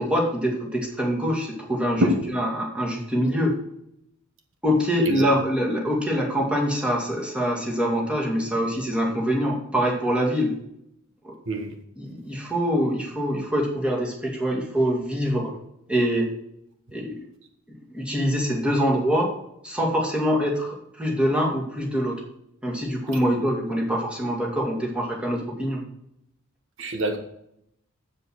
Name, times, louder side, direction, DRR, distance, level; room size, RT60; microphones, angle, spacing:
voice 1, 0.0-3.5 4.6-10.5 11.2-11.4 12.0-15.5 15.9-16.3 16.9-17.2 17.9-19.3 19.6-22.2 22.6-25.8, equal, 5° right, -2 dB, 2.3 m, -24 dB
voice 2, 26.8-27.2, equal, 65° right, 5 dB, 1.3 m, -24 dB
7.9 x 7.6 x 6.2 m, 0.76 s
head